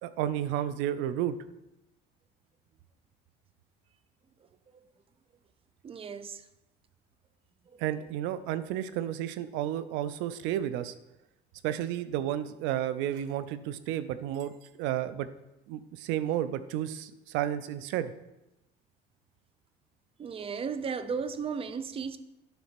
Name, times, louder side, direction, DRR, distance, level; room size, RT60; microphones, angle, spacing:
voice 1, 0.0-1.3 7.8-10.9 11.6-14.5 14.8-15.3 15.7-18.1, right 11 dB, 80° right, 0.6 m, -32 dB
voice 2, 5.8-6.4 20.2-22.2, right 6 dB, 30° right, 0.6 m, -35 dB
9.3 x 4.1 x 5.9 m
cardioid pair, 115°, 19 cm